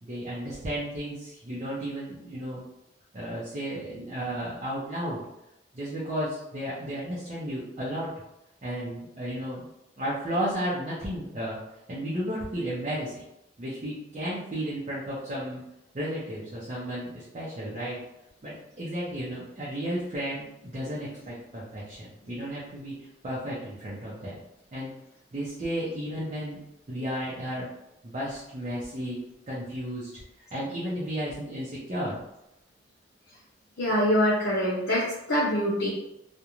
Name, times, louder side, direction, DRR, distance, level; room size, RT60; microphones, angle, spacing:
voice 1, 0.0-2.6 3.1-5.2 5.7-8.1 8.6-9.7 10.0-11.6 11.9-13.2 13.6-15.6 15.9-18.0 18.4-24.4 24.7-24.9 25.3-26.6 26.9-27.7 28.0-30.1 30.5-32.2, equal, 40° right, -7 dB, 0.5 m, -33 dB
voice 2, 33.8-35.9, equal, 75° left, -6 dB, 0.6 m, -24 dB
2.4 x 2.1 x 2.9 m, 0.87 s
head